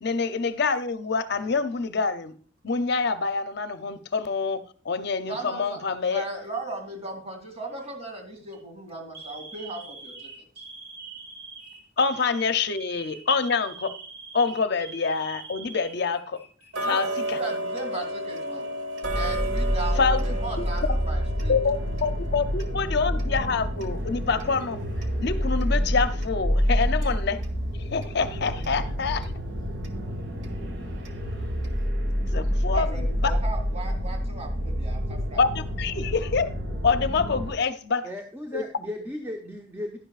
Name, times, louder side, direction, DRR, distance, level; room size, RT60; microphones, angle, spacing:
voice 1, 0.0-2.3 2.6-6.3 12.0-13.9 14.3-16.4 16.9-17.4 20.0-20.2 20.6-20.7 21.5-24.8 25.2-27.4 27.9-29.3 32.3-33.3 35.4-36.5 36.8-38.1 38.5-38.6, left 5 dB, 60° left, 0.6 m, -26 dB
voice 2, 5.2-5.8 6.1-10.3 16.8-18.7 19.1-21.5 32.7-35.4, right 2 dB, 35° right, 2.7 m, -37 dB
Alarm, 6.2-6.8 7.6-7.9 8.4-8.6 9.1-16.7 17.0-17.1 18.0-18.7, right 4 dB, 50° right, 2.4 m, -44 dB
Tick-tock, 16.7-27.6 28.0-28.1 28.6-28.7 29.2-29.3 29.8-29.9 30.4-30.5 31.1-31.2 31.6-31.7, right 1 dB, 90° right, 1.3 m, -35 dB
sound 1, 19.0-37.5, equal, 75° right, 2.1 m, -28 dB
voice 3, 38.0-40.0, left 1 dB, 15° right, 0.8 m, -36 dB
11.0 x 10.0 x 2.4 m
head